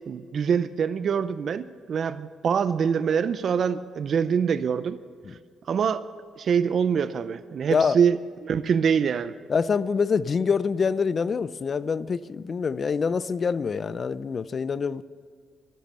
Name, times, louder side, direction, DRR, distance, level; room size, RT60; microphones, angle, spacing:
voice 1, 0.1-5.0 5.7-6.0 6.4-9.3, right 7 dB, 55° right, 0.5 m, -24 dB
voice 2, 9.5-15.0, left 5 dB, 40° left, 0.5 m, -25 dB
13.5 x 13.5 x 6.8 m
cardioid pair, 90°, 0 cm